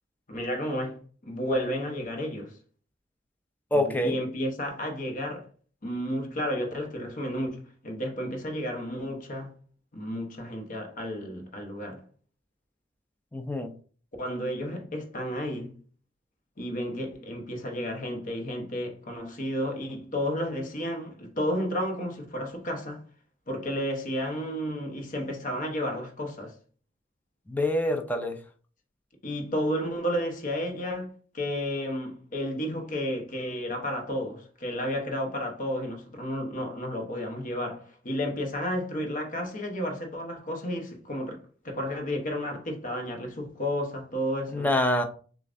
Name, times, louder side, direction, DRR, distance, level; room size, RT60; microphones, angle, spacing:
voice 1, 0.3-2.5 3.7-5.4 5.8-9.5 9.9-12.0 14.2-15.7 16.6-23.0 23.5-26.6 29.2-41.4 41.6-44.7, equal, 45° left, 1.0 m, -32 dB
voice 2, 3.7-4.2 13.3-13.7 27.5-28.4 44.5-45.0, left 1 dB, 10° left, 0.5 m, -26 dB
6.5 x 2.5 x 2.5 m
head